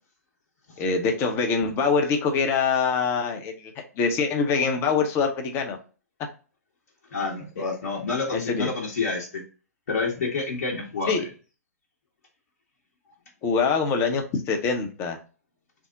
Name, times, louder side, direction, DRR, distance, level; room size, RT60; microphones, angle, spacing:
voice 1, 0.8-5.8 8.3-8.7 11.1-11.2 13.4-15.2, left 5 dB, 30° left, 5 dB, 0.7 m, -24 dB
voice 2, 7.1-9.4 9.9-11.2, left 4 dB, 60° left, -3 dB, 1.0 m, -28 dB
3.5 x 2.1 x 3.8 m, 0.36 s
figure-of-eight pair, 115°, 9 cm